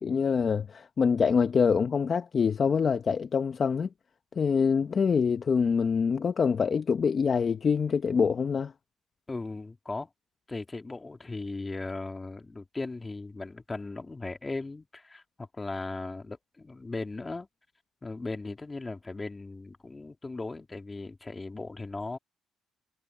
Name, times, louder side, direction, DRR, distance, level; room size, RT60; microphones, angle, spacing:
voice 1, 0.0-3.9 4.4-8.7, left 6 dB, 45° left, 1.0 m, -25 dB
voice 2, 9.3-10.1 10.5-17.5 18.0-22.2, left 3 dB, 20° left, 2.6 m, -37 dB
cardioid pair, 90°, 0 cm